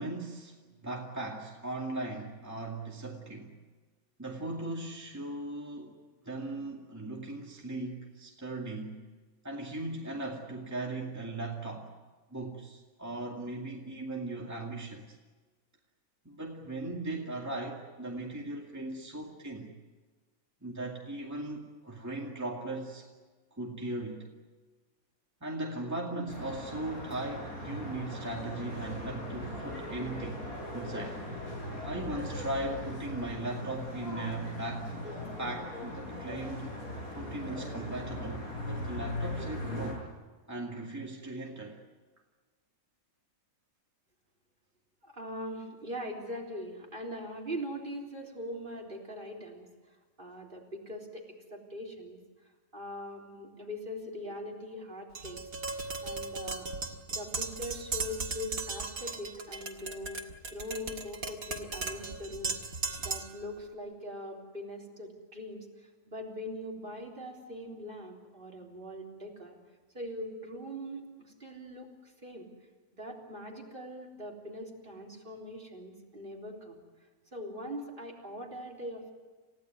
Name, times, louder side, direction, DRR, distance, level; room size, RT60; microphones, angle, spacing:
voice 1, 0.0-3.6 4.2-6.0 6.2-9.0 9.4-11.9 12.3-15.2 16.2-19.7 20.6-23.1 23.5-24.3 25.4-30.4 30.7-31.2 31.8-34.9 35.4-36.7 37.1-40.1 40.5-41.8, right 2 dB, 10° right, -1 dB, 2.3 m, -38 dB
sound 1, 26.3-39.9, left 1 dB, 70° left, 7.9 m, -39 dB
voice 2, 45.0-55.4 56.0-56.7 57.1-60.2 60.5-69.6 69.9-72.5 72.9-76.8 77.3-79.1, equal, 35° right, 2 dB, 3.9 m, -42 dB
Tap, 55.2-63.4, right 4 dB, 70° right, 2.3 m, -37 dB
29.5 x 16.0 x 9.5 m, 1.4 s
omnidirectional pair, 1.6 m